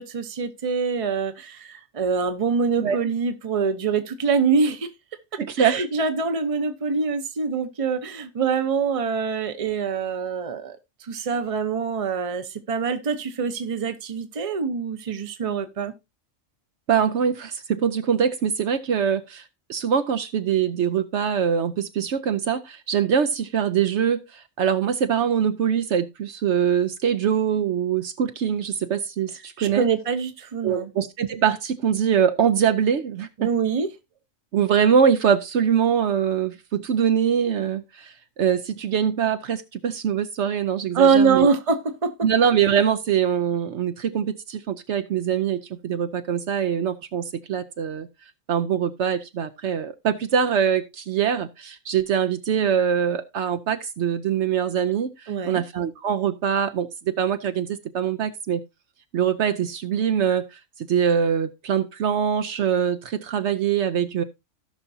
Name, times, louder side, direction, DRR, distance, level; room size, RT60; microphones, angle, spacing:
voice 1, 0.0-4.9 5.3-10.8 11.0-15.9 29.6-30.9 33.4-33.9 40.9-42.1 55.3-55.6, right 5 dB, 30° right, 0.8 m, -24 dB
voice 2, 5.4-5.8 16.9-19.4 19.7-29.9 30.6-33.5 34.5-41.5 42.2-48.1 48.5-58.6 59.1-64.2, right 8 dB, 65° right, 0.9 m, -23 dB
17.0 x 5.8 x 2.7 m
omnidirectional pair, 1.3 m